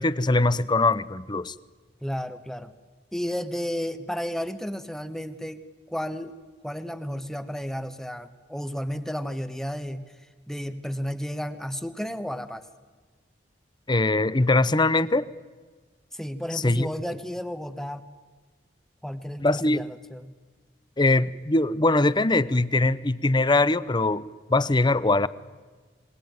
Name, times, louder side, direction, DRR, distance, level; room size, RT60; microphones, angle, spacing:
voice 1, 0.0-1.5 13.9-15.3 16.5-16.9 19.4-19.8 21.0-24.2 24.5-25.3, left 2 dB, 25° left, 18 dB, 0.8 m, -22 dB
voice 2, 2.0-2.7 3.1-5.6 5.9-6.3 6.6-10.1 10.5-12.6 16.1-18.0 19.0-20.3, equal, 5° left, 10 dB, 1.2 m, -32 dB
27.0 x 21.0 x 9.3 m, 1.4 s
head